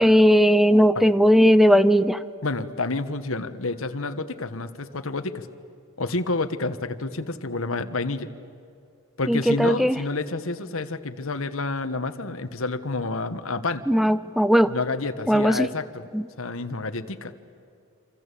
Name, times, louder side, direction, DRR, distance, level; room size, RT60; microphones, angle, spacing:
voice 1, 0.0-2.2 9.3-10.0 13.9-14.7 15.3-15.7 16.1-16.2, equal, ahead, 14 dB, 0.7 m, -18 dB
voice 2, 2.4-5.5 6.0-8.3 9.2-13.8 14.6-16.1 16.4-17.3, left 3 dB, 80° left, 9 dB, 1.4 m, -29 dB
26.5 x 26.5 x 8.4 m, 2.5 s
head